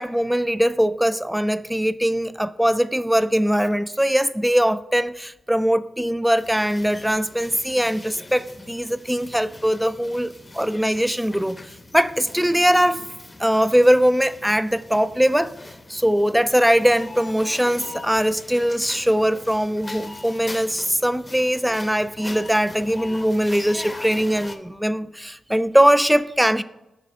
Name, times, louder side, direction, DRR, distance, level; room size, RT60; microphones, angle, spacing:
voice 1, 0.0-11.6 11.9-13.0 13.4-15.5 15.9-26.6, equal, 5° right, 0.3 m, -21 dB
sound 1, 6.4-24.6, left 2 dB, 30° left, 0.7 m, -41 dB
6.3 x 4.1 x 3.5 m
supercardioid pair, 40°, 0 cm